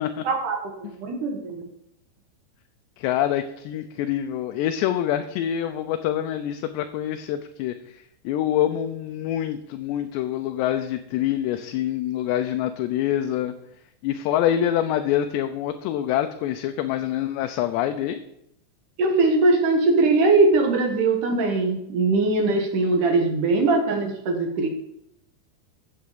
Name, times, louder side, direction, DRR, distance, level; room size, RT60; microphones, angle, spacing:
voice 1, 0.2-1.7 19.0-24.7, right 3 dB, 55° right, 3 dB, 2.6 m, -21 dB
voice 2, 3.0-13.5 14.0-18.2, left 11 dB, 80° left, 8 dB, 2.8 m, -26 dB
14.0 x 8.1 x 5.2 m, 0.79 s
omnidirectional pair, 5.1 m